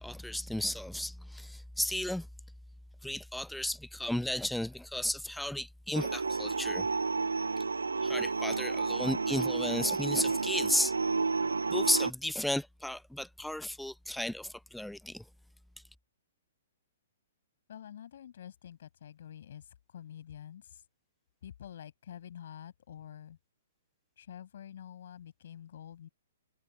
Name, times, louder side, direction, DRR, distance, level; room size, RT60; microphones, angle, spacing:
voice 1, 0.0-2.3 3.0-6.8 8.0-10.9 11.7-15.2, left 1 dB, ahead, 0.4 m, -34 dB
sound 1, 5.9-12.1, right 4 dB, 75° right, 1.4 m, -31 dB
voice 2, 17.7-20.8 21.4-23.4 24.2-26.1, left 10 dB, 55° left, 7.5 m, -48 dB
figure-of-eight pair, 115°, 0 cm